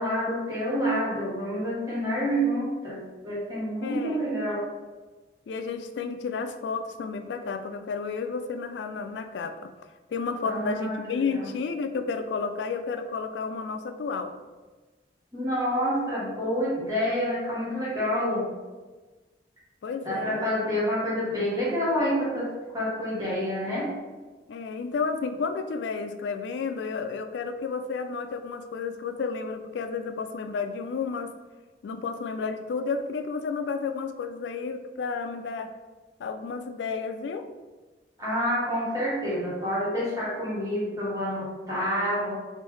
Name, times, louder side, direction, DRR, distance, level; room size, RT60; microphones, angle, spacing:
voice 1, 0.0-4.6 10.4-11.5 15.3-18.5 20.0-23.9 38.2-42.3, equal, 20° right, -8 dB, 1.1 m, -28 dB
voice 2, 3.8-4.3 5.5-9.7 10.1-14.3 19.8-20.4 24.5-31.3 31.8-35.7 36.2-37.5, left 5 dB, 90° left, 8 dB, 0.3 m, -31 dB
3.1 x 2.6 x 3.2 m, 1.3 s
head